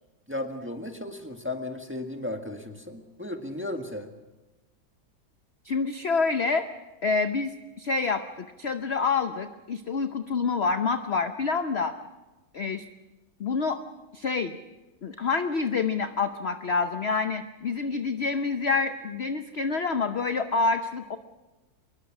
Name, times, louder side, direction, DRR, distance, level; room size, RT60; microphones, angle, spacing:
voice 1, 0.3-4.1, left 1 dB, 5° right, 4 dB, 1.4 m, -35 dB
voice 2, 5.6-6.7 7.0-12.0 12.5-12.8 13.4-13.8 14.1-14.6 15.0-21.2, left 4 dB, 50° left, 8 dB, 0.8 m, -27 dB
24.5 x 21.5 x 6.1 m, 1.1 s
omnidirectional pair, 2.0 m